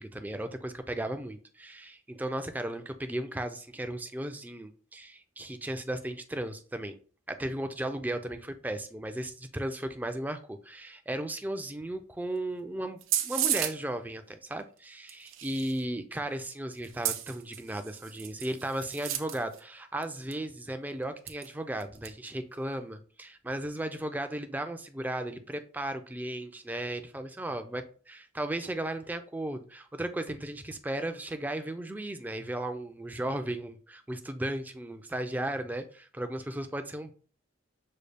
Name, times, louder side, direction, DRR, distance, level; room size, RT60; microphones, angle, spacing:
voice 1, 0.0-7.0 7.3-37.1, right 1 dB, 10° right, 7 dB, 0.4 m, -35 dB
sound 1, 13.0-13.8 15.1-15.8 16.8-19.6 20.0-20.1 20.3-20.4 21.3-21.5 21.8-22.1, right 11 dB, 80° right, 0.5 m, -33 dB
6.4 x 2.3 x 3.3 m, 0.40 s
head